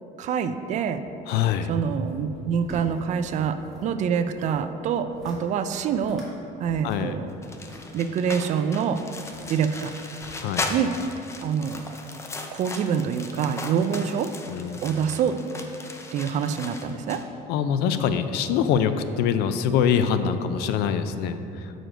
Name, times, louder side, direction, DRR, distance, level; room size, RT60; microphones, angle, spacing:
voice 1, 0.2-1.0 1.7-6.2 6.6-7.3 7.9-9.0 9.5-10.0 10.7-10.9 11.4-11.8 12.5-14.3 14.8-15.4 16.1-17.2, right 7 dB, 45° right, 10 dB, 0.4 m, -26 dB
voice 2, 1.3-1.7 6.8-7.1 10.4-10.7 14.5-14.8 17.5-21.7, left 8 dB, 75° left, 10 dB, 0.5 m, -24 dB
sound 1, 2.0-3.9 4.1-4.6 5.0-5.4 5.7-6.3 6.6-8.6 9.2-9.8 10.2-10.3, equal, ahead, 1.9 m, -45 dB
sound 2, 7.4-17.2, left 2 dB, 15° left, 0.5 m, -37 dB
7.5 x 5.0 x 5.0 m, 2.7 s
cardioid pair, 150°, 17 cm